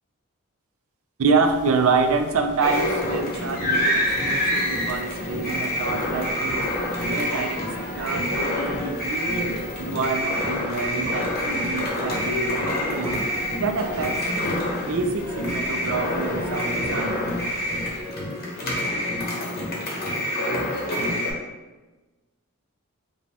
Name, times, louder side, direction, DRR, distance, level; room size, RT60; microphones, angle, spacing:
voice 1, 1.2-6.7 7.0-7.6 8.0-13.2 13.6-14.3 14.9-17.3, right 4 dB, 65° right, 5 dB, 0.4 m, -27 dB
sound 1, 1.4-18.0, left 1 dB, 80° left, 0.5 m, -41 dB
sound 2, 2.6-21.3, left 1 dB, 45° left, 0.9 m, -26 dB
5.1 x 2.3 x 2.8 m, 1.2 s
head